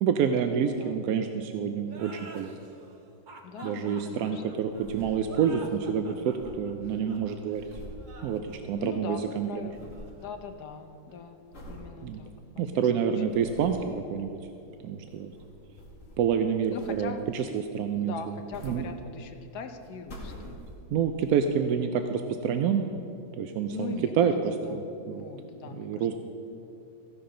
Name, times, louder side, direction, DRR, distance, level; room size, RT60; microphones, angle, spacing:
voice 1, 0.0-2.6 3.6-7.6 8.2-9.7 12.0-12.2 12.6-14.4 14.8-15.3 16.2-18.4 18.6-18.8 20.9-22.8 23.4-25.3 25.8-26.1, right 7 dB, 70° right, 6 dB, 0.9 m, -28 dB
sound 1, 1.8-11.1, right 3 dB, 50° right, 0.6 m, -49 dB
voice 2, 3.4-4.4 8.7-9.8 10.2-13.2 16.7-17.3 18.0-20.6 23.7-26.1, left 5 dB, 65° left, 7 dB, 1.2 m, -41 dB
sound 2, 4.7-5.6 5.9-6.0 6.1-8.9 9.2-10.2 10.6-11.0 11.5-11.9 12.4-12.5 13.0-13.9 14.9-16.4 16.7-17.3 18.2-19.4 19.8-21.0 21.6-21.7, equal, 45° left, 2.3 m, -46 dB
15.0 x 11.0 x 3.8 m, 2.7 s
omnidirectional pair, 2.0 m